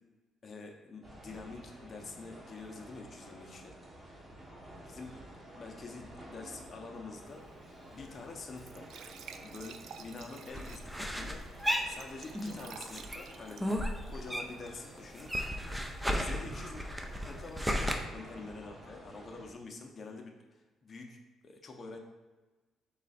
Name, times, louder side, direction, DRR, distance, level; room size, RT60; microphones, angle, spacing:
voice 1, 0.4-3.8 4.9-7.5 7.9-8.9 9.4-11.4 11.9-15.6 16.1-16.8 17.3-21.2 21.4-22.0, left 3 dB, 40° left, 2 dB, 0.7 m, -47 dB
sound 1, 1.0-19.5, right 1 dB, 30° right, 1.3 m, -51 dB
Glass / Trickle dribble / Fill (with liquid), 7.3-14.6, right 7 dB, 75° right, 0.3 m, -53 dB
sound 2, 10.5-12.6 12.9-14.7 15.0-17.9, equal, 5° right, 0.5 m, -34 dB
3.9 x 3.2 x 4.1 m, 1.2 s
cardioid pair, 95°, 0 cm